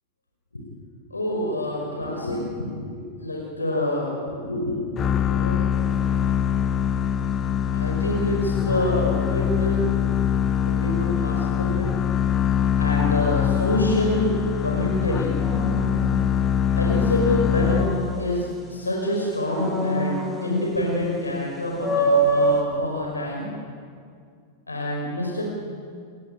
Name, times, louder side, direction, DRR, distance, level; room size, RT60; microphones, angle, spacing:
voice 1, 1.1-5.6 7.7-10.2 10.7-11.9 12.1-12.3 12.8-14.3 14.6-15.3 16.8-17.9 18.2-23.5 24.7-25.4, left 1 dB, 80° left, -1 dB, 5.2 m, -27 dB
sound 1, 5.0-18.4, left 9 dB, 25° left, 0.7 m, -23 dB
sound 2, 5.7-6.1 15.4-16.8 17.2-18.9 19.4-20.9 21.3-21.4 21.8-22.6, right 2 dB, ahead, 5.5 m, -26 dB
29.5 x 19.0 x 8.9 m, 2.2 s
figure-of-eight pair, 90°, 0 cm